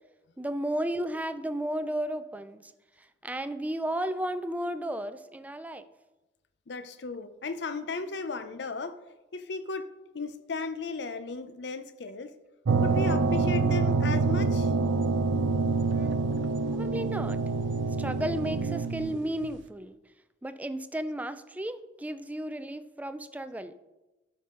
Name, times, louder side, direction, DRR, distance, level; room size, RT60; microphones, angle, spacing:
voice 1, 0.4-2.7 3.2-5.9 15.9-16.1 16.7-17.4 18.0-19.9 20.4-23.7, right 1 dB, 10° right, 0.4 m, -33 dB
voice 2, 6.7-9.0 9.3-12.4 12.8-14.7, left 4 dB, 65° left, 0.6 m, -35 dB
sound 1, 12.7-19.5, right 4 dB, 85° right, 0.5 m, -26 dB
12.5 x 5.5 x 3.8 m
head